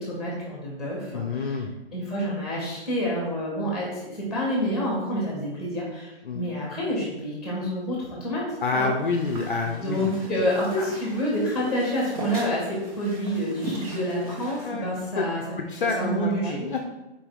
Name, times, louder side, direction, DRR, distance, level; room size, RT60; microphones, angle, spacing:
voice 1, 0.0-1.6 1.9-8.4 8.7-8.9 9.6-15.4 15.8-16.6, equal, ahead, -4 dB, 1.7 m, -28 dB
voice 2, 1.1-1.7 6.2-6.4 8.6-10.1 14.6-14.9 15.2-15.3 15.6-16.9, left 4 dB, 50° left, 4 dB, 0.7 m, -28 dB
sound 1, 8.9-14.6, right 1 dB, 30° right, 1.2 m, -38 dB
7.0 x 4.7 x 3.5 m, 1.0 s
hypercardioid pair, 160°, 34 cm